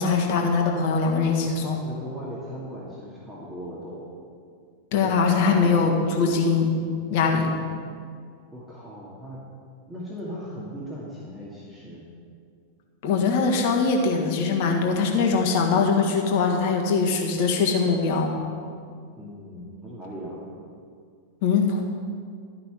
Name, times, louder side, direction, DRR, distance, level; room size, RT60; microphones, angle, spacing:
voice 1, 0.0-1.8 4.9-6.7 7.1-7.5 13.0-18.3 21.4-21.8, left 4 dB, 45° left, 1 dB, 1.6 m, -22 dB
voice 2, 1.8-4.0 5.4-6.1 8.5-9.4 9.9-12.0 19.2-20.5, equal, 10° right, -7 dB, 2.3 m, -38 dB
13.0 x 5.8 x 7.8 m, 2.2 s
figure-of-eight pair, 90°, 0 cm